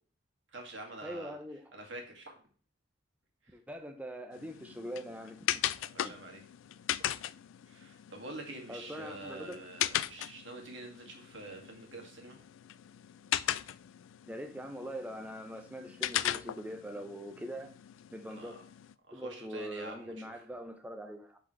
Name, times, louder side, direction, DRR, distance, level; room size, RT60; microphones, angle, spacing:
voice 1, 0.5-1.4 1.7-2.4 3.4-3.6 5.8-6.4 7.7-12.4 18.3-18.6 19.1-20.3, right 2 dB, 75° right, 2.0 m, -46 dB
voice 2, 1.0-1.6 3.5-5.6 6.0-6.1 8.7-9.6 14.3-17.7 18.1-18.6 19.1-21.4, equal, 10° right, 0.5 m, -42 dB
sound 1, 4.3-18.9, left 12 dB, 85° left, 0.3 m, -38 dB
10.5 x 4.1 x 3.2 m
head